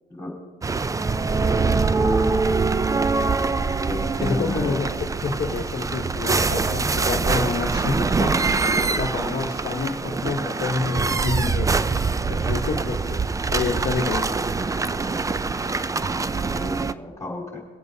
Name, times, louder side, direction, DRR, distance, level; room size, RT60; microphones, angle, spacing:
sound 1, 0.6-16.9, right 4 dB, 15° right, 0.4 m, -24 dB
voice 1, 1.5-2.4 2.9-3.0 3.9-4.8 15.9-17.6, left 2 dB, 15° left, -2 dB, 3.7 m, -33 dB
voice 2, 4.2-8.3 9.0-11.8 12.3-13.2 13.5-14.3, left 4 dB, 50° left, 0 dB, 1.1 m, -28 dB
24.5 x 8.5 x 2.7 m, 1.5 s
cardioid pair, 90°, 20 cm